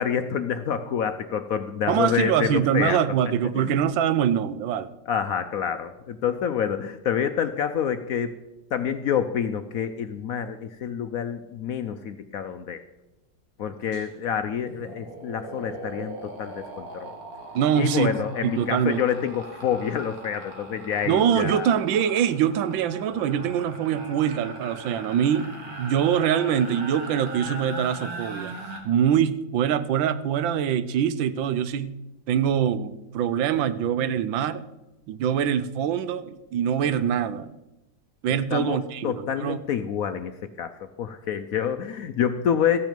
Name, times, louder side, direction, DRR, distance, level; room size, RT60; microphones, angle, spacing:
voice 1, 0.0-3.0 3.5-3.7 5.1-8.3 8.7-12.8 13.6-17.1 17.8-21.8 38.3-42.8, left 8 dB, 70° left, 9 dB, 0.8 m, -27 dB
voice 2, 1.9-4.9 17.5-18.2 18.4-19.0 21.0-25.5 25.8-28.6 28.8-31.9 32.3-34.6 35.1-37.5 38.2-39.6, right 9 dB, 80° right, 13 dB, 1.4 m, -24 dB
sound 1, 13.9-14.1 14.4-28.8, right 2 dB, 50° right, 2.1 m, -39 dB
14.0 x 9.1 x 5.1 m, 0.97 s
omnidirectional pair, 2.0 m